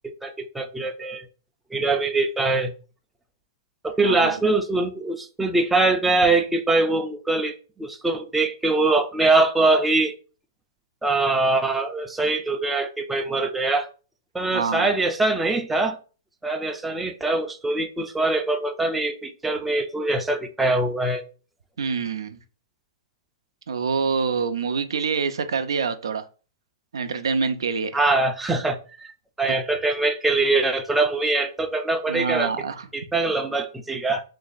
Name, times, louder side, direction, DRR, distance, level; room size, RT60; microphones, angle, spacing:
voice 1, 0.2-1.2 1.7-2.7 3.8-10.1 11.0-13.9 14.3-16.0 16.4-21.2 27.9-29.1 29.4-32.5 32.9-34.2, right 2 dB, 5° right, 0.4 m, -23 dB
voice 2, 14.5-14.9 21.8-22.4 23.7-26.2 26.9-27.9 32.1-32.9, right 5 dB, 90° right, 0.4 m, -26 dB
3.1 x 2.6 x 3.9 m
hypercardioid pair, 135°, 2 cm